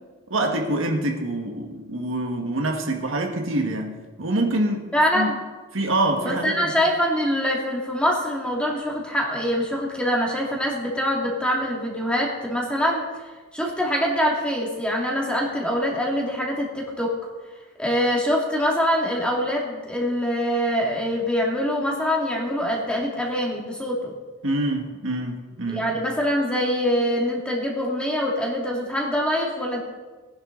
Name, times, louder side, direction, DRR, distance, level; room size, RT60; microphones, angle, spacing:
voice 1, 0.3-5.3 5.7-6.7 24.4-25.9, right 1 dB, 75° right, 2 dB, 1.7 m, -26 dB
voice 2, 4.9-5.4 6.2-13.0 13.5-17.1 17.8-24.1 25.7-29.8, equal, 5° left, -2 dB, 2.4 m, -24 dB
18.5 x 10.5 x 3.9 m, 1.3 s
head